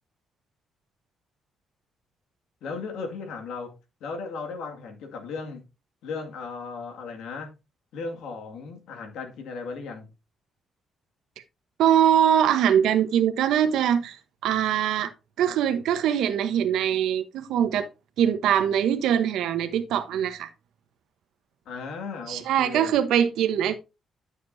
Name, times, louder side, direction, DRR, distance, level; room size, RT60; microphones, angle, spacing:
voice 1, 2.6-5.6 6.0-7.5 7.9-10.1 21.7-23.0, left 4 dB, 85° left, 2.1 m, -36 dB
voice 2, 11.8-15.1 15.4-17.9 18.2-20.5 22.3-23.8, right 9 dB, 85° right, 1.0 m, -22 dB
11.0 x 6.7 x 2.7 m
cardioid pair, 90°, 0 cm